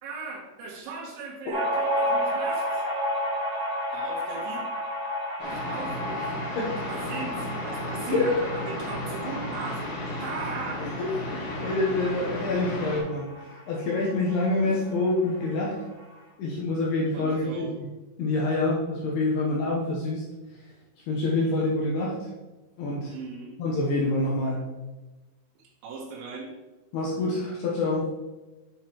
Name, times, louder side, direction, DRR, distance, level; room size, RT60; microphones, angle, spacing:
voice 1, 0.0-2.8 3.9-4.7 5.4-6.4 6.8-11.2 14.6-14.7 17.1-17.7 23.1-23.5 25.8-26.5, right 4 dB, 85° right, -2 dB, 3.8 m, -38 dB
sound 1, 1.5-14.6 14.9-15.0 15.3-16.1, equal, 50° right, 1.4 m, -32 dB
sound 2, 5.4-13.0, left 1 dB, 55° left, 3.1 m, -34 dB
voice 2, 8.0-8.3 10.8-15.8 16.4-17.9 18.2-20.3 21.1-22.3 22.8-23.1 23.6-24.7 26.9-28.1, left 2 dB, 75° left, -3 dB, 2.4 m, -27 dB
8.8 x 7.1 x 3.0 m, 1.2 s
omnidirectional pair, 5.7 m